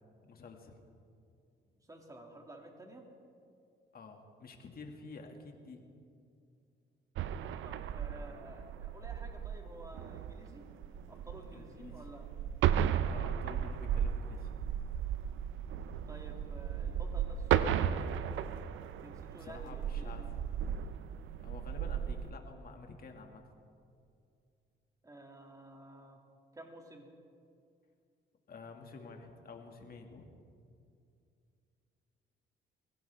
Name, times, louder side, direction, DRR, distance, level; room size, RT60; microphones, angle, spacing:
voice 1, 0.2-0.7 3.9-5.8 11.5-12.1 13.0-14.5 19.4-20.3 21.4-23.4 28.5-30.4, left 4 dB, 50° left, 3 dB, 2.1 m, -50 dB
voice 2, 1.9-3.1 7.6-10.6 11.1-12.3 16.1-20.3 25.0-26.2 26.5-27.1, right 1 dB, 15° right, 2 dB, 2.5 m, -52 dB
sound 1, 7.2-22.3, right 9 dB, 80° right, 0.6 m, -35 dB
22.0 x 16.5 x 3.5 m, 2.4 s
cardioid pair, 90°, 20 cm